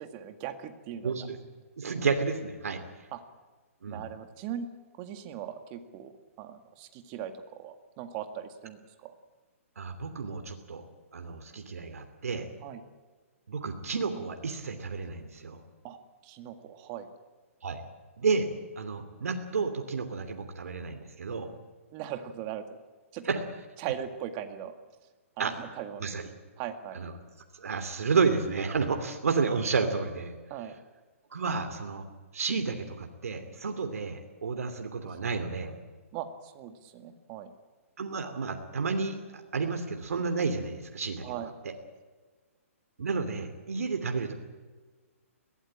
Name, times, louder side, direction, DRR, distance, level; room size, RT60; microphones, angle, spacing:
voice 1, 0.0-1.1 3.1-3.2 3.9-4.7 5.0-6.1 6.4-9.1 12.6-12.8 15.8-17.1 21.9-22.6 23.1-23.3 23.8-24.7 25.4-26.0 26.6-27.0 30.5-30.7 35.1-35.2 36.1-37.5 41.2-41.5, right 10 dB, 30° right, 8 dB, 2.0 m, -39 dB
voice 2, 1.0-1.4 1.8-2.8 3.8-4.1 9.8-10.8 11.1-12.5 13.5-15.6 17.6-17.8 18.2-18.5 18.8-21.5 23.2-23.4 25.4-25.5 26.0-26.2 26.9-27.1 27.6-30.4 31.3-32.0 32.3-35.8 38.0-39.2 39.5-41.2 41.6-41.7 43.0-44.3, right 4 dB, 80° right, 6 dB, 2.9 m, -31 dB
21.5 x 17.0 x 8.8 m, 1.3 s
hypercardioid pair, 150°, 8 cm